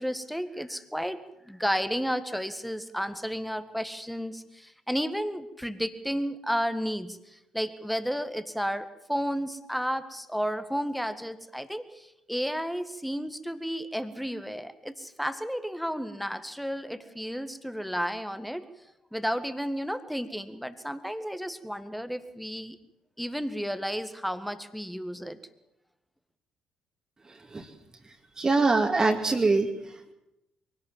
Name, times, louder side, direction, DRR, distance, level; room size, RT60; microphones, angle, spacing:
voice 1, 0.0-18.7 19.1-22.8 23.2-25.4, equal, ahead, 11 dB, 1.8 m, -32 dB
voice 2, 27.3-27.7 28.0-30.1, right 3 dB, 25° right, 3 dB, 2.4 m, -25 dB
23.5 x 17.0 x 7.5 m, 0.88 s
figure-of-eight pair, 45°, 2 cm